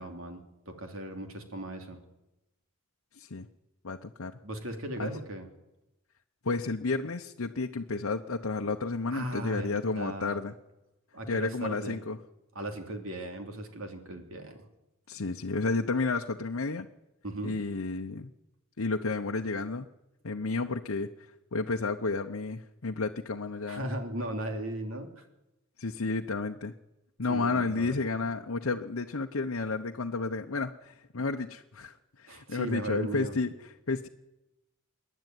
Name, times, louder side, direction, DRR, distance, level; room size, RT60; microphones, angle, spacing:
voice 1, 0.0-2.0 4.4-5.5 9.1-10.4 11.1-12.0 12.5-14.6 17.2-17.5 23.7-25.2 27.3-28.0 32.3-33.3, right 1 dB, 70° right, 5 dB, 3.1 m, -37 dB
voice 2, 3.2-3.5 3.8-4.3 5.0-5.1 6.4-10.5 11.3-12.2 15.1-16.9 17.4-18.3 18.8-19.9 20.2-21.1 21.5-23.9 25.8-26.7 27.2-33.5 33.9-34.1, left 3 dB, 70° left, 3 dB, 0.9 m, -31 dB
27.5 x 11.0 x 9.3 m, 0.96 s
head